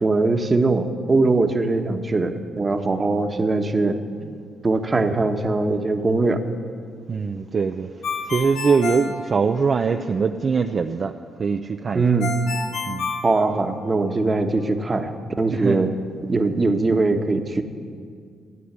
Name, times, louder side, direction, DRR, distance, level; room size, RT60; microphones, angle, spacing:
voice 1, 0.0-4.0 4.6-6.4 11.9-12.3 13.2-15.9 16.3-17.6, right 3 dB, 25° right, 6 dB, 1.3 m, -21 dB
voice 2, 7.1-7.9 8.3-11.1 11.4-12.0 12.9-13.1 15.5-15.8, right 5 dB, 45° right, 5 dB, 0.6 m, -22 dB
Ringtone, 8.0-10.0 12.2-14.1, left 4 dB, 80° left, 2.0 m, -29 dB
15.0 x 9.5 x 9.7 m, 2.1 s
cardioid pair, 90°, 0 cm